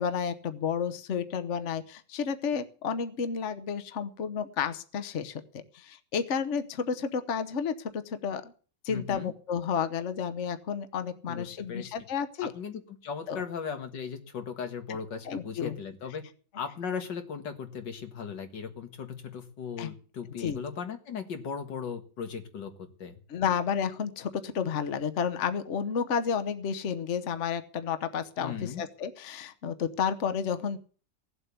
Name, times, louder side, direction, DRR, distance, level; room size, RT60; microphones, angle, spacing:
voice 1, 0.0-5.4 5.7-8.5 8.8-12.5 13.3-13.4 15.3-15.7 19.8-19.9 20.4-20.6 23.3-30.8, left 7 dB, 45° left, 11 dB, 1.2 m, -31 dB
voice 2, 8.9-9.3 11.3-11.9 12.4-16.2 16.5-23.2 28.4-28.8, left 6 dB, 90° left, 7 dB, 2.4 m, -37 dB
16.5 x 7.9 x 8.2 m, 0.42 s
omnidirectional pair, 1.9 m